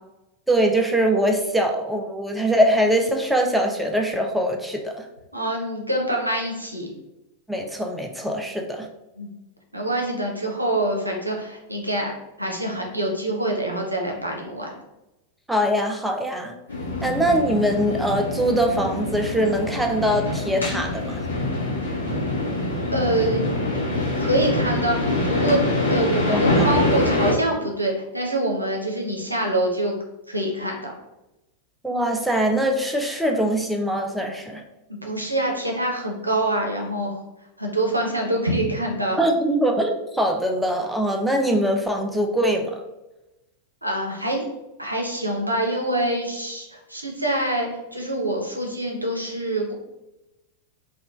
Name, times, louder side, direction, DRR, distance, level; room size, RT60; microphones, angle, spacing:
voice 1, 0.5-5.0 7.5-8.9 15.5-16.6 17.0-21.2 26.3-26.7 31.8-34.6 39.2-42.8, right 1 dB, 5° right, 2 dB, 0.3 m, -22 dB
voice 2, 5.3-6.9 9.2-9.3 9.7-12.1 12.4-14.7 22.9-23.5 24.2-29.9 30.3-30.9 35.0-37.2 37.6-39.2 43.8-44.4 44.8-49.7, right 1 dB, 85° right, -1 dB, 0.5 m, -25 dB
sound 1, 16.7-27.3, left 1 dB, 75° left, 0.7 m, -24 dB
3.0 x 2.2 x 2.3 m, 0.97 s
figure-of-eight pair, 90°, 0 cm